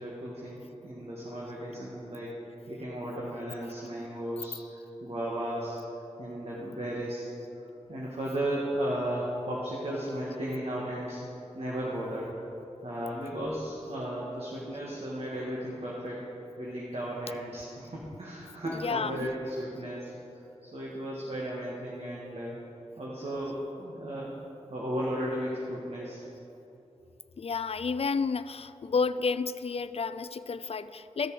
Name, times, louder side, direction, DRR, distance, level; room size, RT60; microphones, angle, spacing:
voice 1, 0.0-2.4 2.7-4.5 5.0-5.8 6.2-7.3 7.9-11.2 11.5-12.3 12.8-16.2 16.6-20.1 20.6-22.6 23.0-24.3 24.7-26.2, right 1 dB, 55° right, -5 dB, 1.9 m, -35 dB
voice 2, 10.0-10.4 18.6-19.3 27.4-31.3, left 5 dB, 55° left, 14 dB, 0.4 m, -31 dB
14.5 x 6.7 x 4.9 m, 2.9 s
cardioid pair, 40°, 12 cm